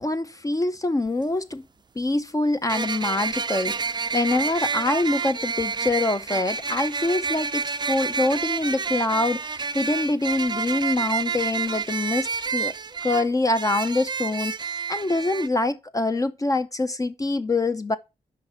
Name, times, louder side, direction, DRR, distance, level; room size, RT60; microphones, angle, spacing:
voice 1, 0.0-1.7 2.0-12.7 13.0-18.0, left 2 dB, 25° left, 0.6 m, -25 dB
sound 1, 1.1-1.2 2.7-15.5, right 5 dB, 30° right, 0.5 m, -29 dB
5.9 x 4.8 x 6.6 m
cardioid pair, 55°, 14 cm